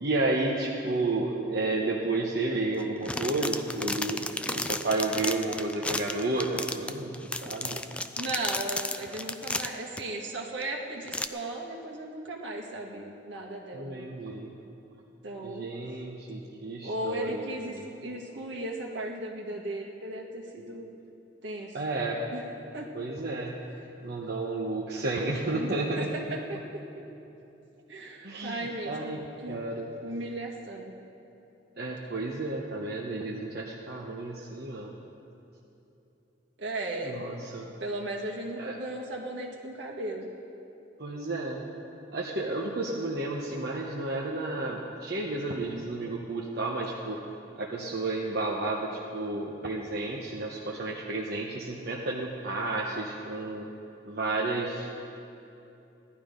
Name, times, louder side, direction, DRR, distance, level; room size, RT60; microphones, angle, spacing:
voice 1, 0.0-4.2 4.5-7.8 13.7-14.6 15.4-17.9 21.7-22.2 22.9-23.6 24.0-26.1 28.2-29.2 29.5-29.9 31.8-34.9 37.0-37.7 38.6-38.7 41.0-41.6 42.1-47.2 47.6-53.7 54.0-55.0, right 2 dB, 55° right, -3 dB, 1.0 m, -32 dB
sound 1, 2.8-10.0 10.6-10.7 11.1-11.3, left 2 dB, 5° left, 0.3 m, -33 dB
voice 2, 8.2-14.1 15.2-15.7 16.8-20.9 21.4-21.8 22.3-22.4 22.7-22.9 25.5-26.8 27.9-29.1 29.4-29.6 30.0-30.9 36.6-37.2 37.8-40.3, right 1 dB, 75° right, -1 dB, 1.9 m, -36 dB
16.5 x 11.5 x 5.2 m, 2.9 s
head